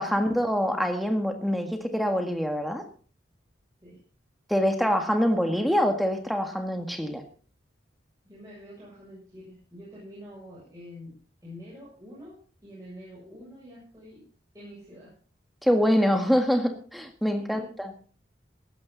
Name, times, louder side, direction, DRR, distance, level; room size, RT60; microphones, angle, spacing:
voice 1, 0.0-2.8 4.5-7.2 15.6-17.9, equal, ahead, 5 dB, 1.7 m, -25 dB
voice 2, 8.3-14.3 14.5-15.1 17.3-17.7, equal, 20° right, -8 dB, 7.0 m, -46 dB
15.5 x 12.5 x 4.0 m, 0.42 s
head